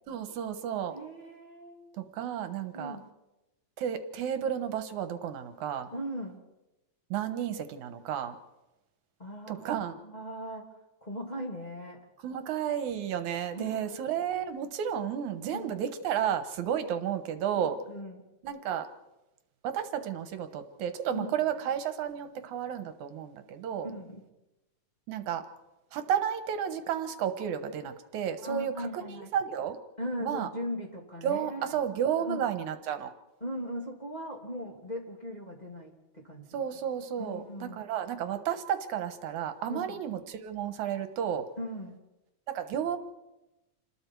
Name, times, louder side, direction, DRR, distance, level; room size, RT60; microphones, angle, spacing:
voice 1, 0.1-1.0 2.0-3.0 3.8-5.9 7.1-8.4 9.5-10.0 12.2-17.8 18.4-18.9 19.6-23.9 25.1-25.4 25.9-29.8 30.2-30.5 31.2-33.1 36.5-41.5 42.5-43.0, right 9 dB, 80° right, 9 dB, 2.6 m, -32 dB
voice 2, 0.9-1.9 2.7-3.1 5.9-6.4 9.2-10.7 11.0-12.0 13.5-14.0 15.5-15.8 17.5-18.2 21.1-21.4 23.8-24.2 28.4-29.3 30.0-31.7 32.2-32.4 33.4-36.5 37.2-37.8 39.7-40.0 41.6-42.0, equal, 15° left, -1 dB, 2.7 m, -39 dB
27.5 x 20.5 x 4.7 m, 0.98 s
omnidirectional pair, 3.4 m